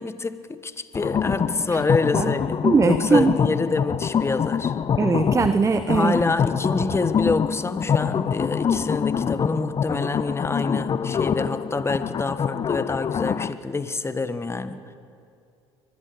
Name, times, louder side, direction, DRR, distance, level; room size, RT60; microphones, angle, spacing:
voice 1, 0.0-4.8 5.9-14.8, left 3 dB, 20° left, 12 dB, 1.4 m, -26 dB
sound 1, 0.9-13.5, left 7 dB, 35° left, 0.7 m, -25 dB
voice 2, 2.6-3.4 5.0-6.2, right 4 dB, 20° right, 12 dB, 0.9 m, -20 dB
24.0 x 19.5 x 8.0 m, 2.5 s
hypercardioid pair, 70°, 14 cm